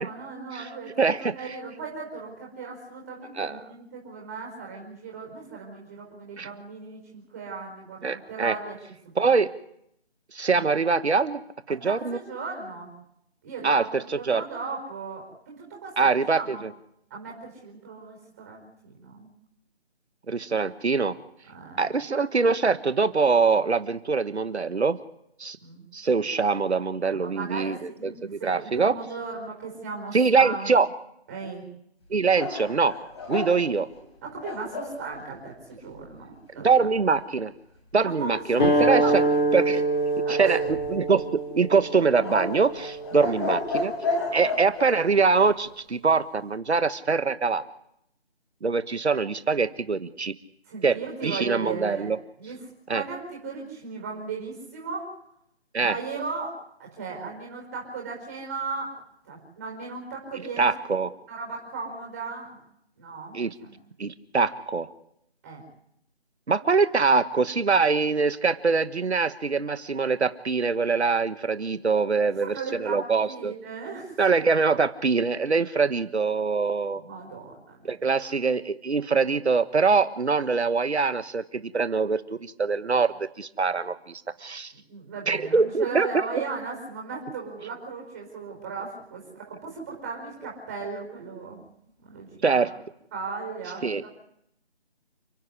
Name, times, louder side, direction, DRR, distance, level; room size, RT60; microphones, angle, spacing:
voice 1, 0.0-8.8 10.5-10.7 11.7-12.9 13.4-16.6 17.1-19.3 21.5-21.9 25.6-25.8 27.1-30.7 31.3-31.6 34.2-36.7 38.0-39.1 40.2-40.6 43.1-43.5 44.1-44.5 50.7-52.1 52.4-52.6 52.9-55.1 55.8-60.7 61.3-62.6 63.0-63.8 65.4-65.6 72.5-74.1 76.8-77.9 78.2-78.3 84.7-91.6 92.0-92.6 93.1-94.1, right 4 dB, 15° right, -1 dB, 5.0 m, -37 dB
voice 2, 1.0-1.6 3.4-3.7 6.4-6.5 8.0-8.6 9.2-9.5 10.3-11.4 11.7-12.2 13.6-14.4 16.0-16.7 20.3-21.2 21.8-25.0 25.4-25.6 25.9-29.0 30.1-30.9 32.1-33.0 33.3-33.9 36.6-37.5 37.9-39.2 39.5-39.8 40.3-43.9 44.3-47.6 48.6-50.3 50.8-52.2 52.9-53.0 55.7-56.0 60.6-61.1 63.3-63.5 64.0-64.9 66.5-73.5 74.2-77.0 77.8-84.7 85.3-86.1 92.4-92.7 93.8-94.0, right 4 dB, 85° right, 13 dB, 1.3 m, -24 dB
sound 1, 32.3-35.0 40.3-41.2 42.2-45.0, left 3 dB, 25° left, 5.3 m, -31 dB
sound 2, 38.6-43.7, right 2 dB, 50° left, 4.2 m, -25 dB
29.5 x 11.0 x 9.9 m, 0.75 s
figure-of-eight pair, 175°, 32 cm